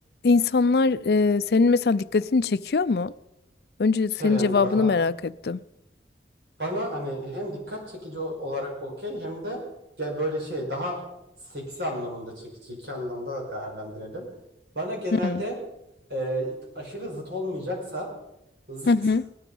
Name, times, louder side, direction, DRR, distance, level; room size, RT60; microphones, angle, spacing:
voice 1, 0.2-3.1 3.8-5.6 15.1-15.4 18.9-19.2, left 4 dB, 60° left, 0.4 m, -22 dB
voice 2, 4.2-4.9 6.6-9.6 10.0-11.0 11.5-14.3 14.8-15.6 16.1-18.1 18.7-18.9, equal, 70° right, 5.2 m, -32 dB
18.0 x 12.0 x 5.5 m
head